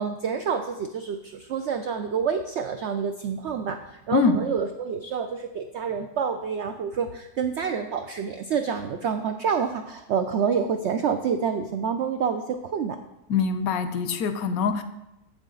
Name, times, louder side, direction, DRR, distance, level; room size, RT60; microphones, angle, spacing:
voice 1, 0.0-13.0, right 6 dB, 85° right, 7 dB, 0.6 m, -28 dB
voice 2, 13.3-14.8, left 5 dB, 70° left, 10 dB, 1.0 m, -24 dB
7.6 x 7.3 x 3.8 m, 0.91 s
omnidirectional pair, 1.7 m